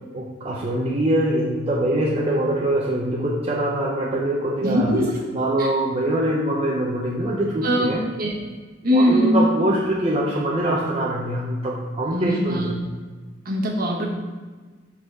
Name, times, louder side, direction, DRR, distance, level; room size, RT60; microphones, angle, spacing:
voice 1, 0.1-4.9 5.3-8.0 8.9-12.7, right 1 dB, 30° right, -4 dB, 0.7 m, -23 dB
voice 2, 4.6-5.1 5.6-5.7 7.6-8.4 8.8-9.4 12.1-12.7 13.4-14.1, equal, 50° right, -1 dB, 1.2 m, -21 dB
5.3 x 4.0 x 5.9 m, 1.4 s
head